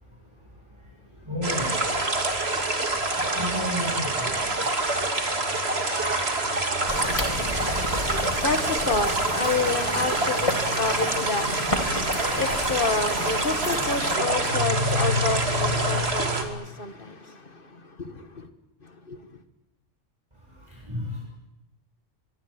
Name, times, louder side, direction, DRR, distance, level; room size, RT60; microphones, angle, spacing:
voice 1, 1.3-1.8 3.3-4.3 5.9-6.4 20.9-21.1, equal, 20° right, 7.7 m, -31 dB
sound 1, 1.4-16.4, right 2 dB, 55° right, 3.0 m, -26 dB
sound 2, 6.9-14.2, left 1 dB, 25° left, 3.1 m, -33 dB
voice 2, 7.0-18.5 18.8-19.4, left 3 dB, 45° left, 2.2 m, -30 dB
25.0 x 23.5 x 9.0 m
omnidirectional pair, 1.3 m